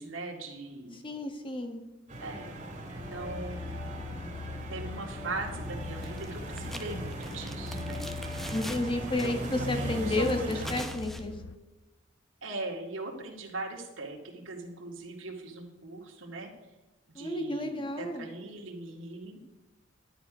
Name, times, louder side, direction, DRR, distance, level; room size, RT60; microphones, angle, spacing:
voice 1, 0.0-1.0 2.2-2.6 3.1-3.7 4.7-8.1 9.0-10.9 12.4-16.5 17.1-19.4, right 2 dB, 85° right, 0 dB, 2.1 m, -40 dB
voice 2, 1.0-1.8 8.5-11.3 17.2-18.3, left 2 dB, 25° left, 5 dB, 1.4 m, -31 dB
sound 1, 2.1-10.8, right 1 dB, 35° right, 2.5 m, -39 dB
sound 2, 3.0-11.6, left 4 dB, 70° left, 0.5 m, -42 dB
sound 3, 6.0-6.3 6.6-8.9 9.2-9.5 10.1-11.2, equal, ahead, 0.7 m, -43 dB
11.5 x 10.5 x 5.0 m, 1.1 s
head